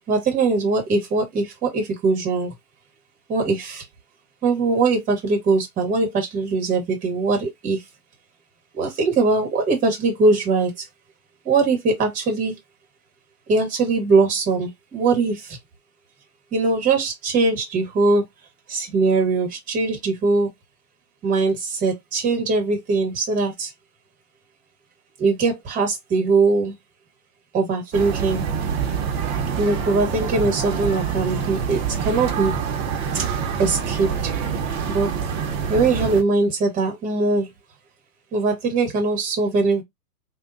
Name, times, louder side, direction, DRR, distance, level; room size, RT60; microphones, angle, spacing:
voice 1, 0.1-2.5 3.3-3.8 4.4-7.8 8.8-10.9 11.4-12.5 13.5-15.6 16.5-18.2 18.7-20.5 21.2-23.7 25.2-26.7 27.5-28.4 29.6-32.6 33.1-33.3 33.6-34.3 34.9-35.1 35.7-37.5 38.3-39.8, right 3 dB, 15° right, 1.2 m, -21 dB
sound 1, 27.9-36.2, right 6 dB, 40° right, 0.9 m, -26 dB
3.6 x 2.4 x 2.6 m
hypercardioid pair, 135°, 47 cm